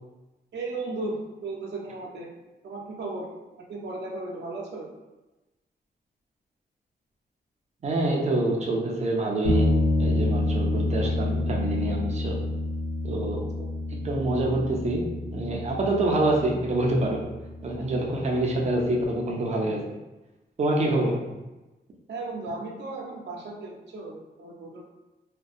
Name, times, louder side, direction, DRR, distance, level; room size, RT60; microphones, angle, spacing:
voice 1, 0.5-2.3 2.6-3.3 3.6-4.9 13.3-13.7 17.7-17.9 22.1-24.8, right 2 dB, 90° right, -1 dB, 0.6 m, -36 dB
voice 2, 7.8-9.7 10.0-12.4 13.0-13.5 13.9-17.2 17.6-19.8 20.6-21.2, right 2 dB, 40° right, -1 dB, 0.4 m, -26 dB
sound 1, 9.4-18.9, left 2 dB, 90° left, 0.6 m, -29 dB
2.6 x 2.1 x 2.4 m, 1.1 s
wide cardioid pair, 165°, 17 cm